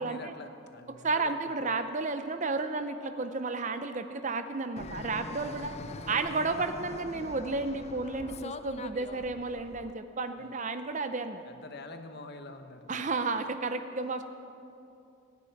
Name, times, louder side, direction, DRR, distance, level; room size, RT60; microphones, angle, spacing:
voice 1, 0.0-1.8 10.4-10.6 11.4-13.1, left 2 dB, 45° left, 7 dB, 1.0 m, -46 dB
voice 2, 1.0-5.7 6.1-11.4 12.9-14.2, right 3 dB, 35° right, 9 dB, 0.6 m, -32 dB
Fixed-wing aircraft airplane, 4.8-9.9, left 3 dB, 30° left, 0.4 m, -43 dB
26.0 x 10.0 x 4.6 m, 2.7 s
head